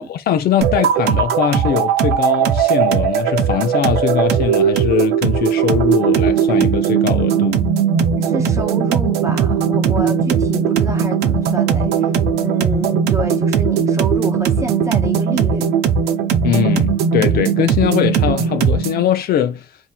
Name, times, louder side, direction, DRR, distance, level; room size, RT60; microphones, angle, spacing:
voice 1, 0.0-7.7 16.4-19.7, left 9 dB, 65° left, 0.7 m, -21 dB
sound 1, 0.6-19.0, right 7 dB, 75° right, 0.8 m, -18 dB
voice 2, 8.1-12.1 12.4-15.7, right 2 dB, 15° right, 1.2 m, -28 dB
3.6 x 2.8 x 4.2 m
cardioid pair, 110°, 17 cm